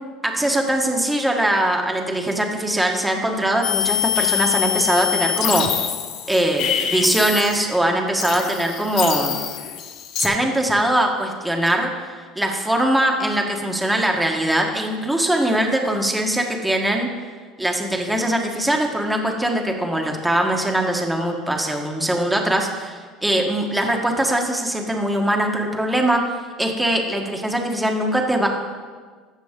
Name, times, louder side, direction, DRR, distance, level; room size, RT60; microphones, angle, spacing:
voice 1, 0.2-5.7 6.3-9.4 10.2-17.1 17.6-26.2 26.6-28.5, right 1 dB, 5° right, 1 dB, 1.4 m, -21 dB
sound 1, 3.6-7.8 8.2-10.3, left 9 dB, 60° left, 0.9 m, -25 dB
14.5 x 5.9 x 3.7 m, 1.5 s
supercardioid pair, 90°, 0 cm